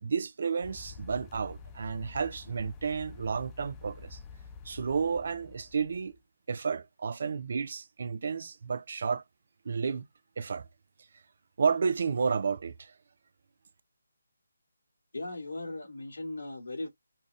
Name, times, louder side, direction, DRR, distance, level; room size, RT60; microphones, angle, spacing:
voice 1, 0.0-4.2 4.6-6.2 6.5-9.2 9.6-10.0 10.4-10.7 11.6-12.9, right 5 dB, 50° right, 0.6 m, -31 dB
sound 1, 0.6-6.2, left 5 dB, 15° left, 0.4 m, -48 dB
voice 2, 15.1-16.9, left 2 dB, 70° left, 2.4 m, -38 dB
5.6 x 2.4 x 3.6 m
figure-of-eight pair, 155°, 0 cm